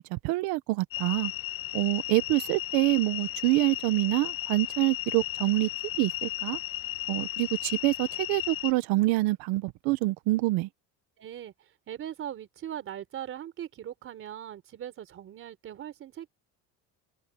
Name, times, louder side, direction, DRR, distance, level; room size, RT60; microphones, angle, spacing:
voice 1, 0.1-1.3 1.7-5.7 6.0-6.6 7.1-10.7, right 20 dB, 80° right, 1.4 m, -26 dB
sound 1, 0.9-8.7, left 16 dB, 40° left, 0.4 m, -35 dB
voice 2, 11.2-16.3, right 11 dB, 35° right, 3.9 m, -40 dB
open air
cardioid pair, 165°, 36 cm